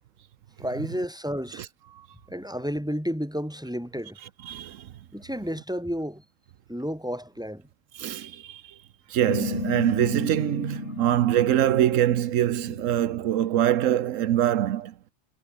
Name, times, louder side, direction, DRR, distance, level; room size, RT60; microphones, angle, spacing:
voice 1, 0.6-1.7 2.3-4.2 5.1-6.2 6.7-7.6, equal, 5° right, 7.9 m, -31 dB
voice 2, 4.4-4.9 7.9-8.7 9.1-14.9, right 11 dB, 85° right, 1.1 m, -24 dB
sound 1, 9.3-14.2, left 5 dB, 65° left, 2.2 m, -35 dB
omnidirectional pair, 1.3 m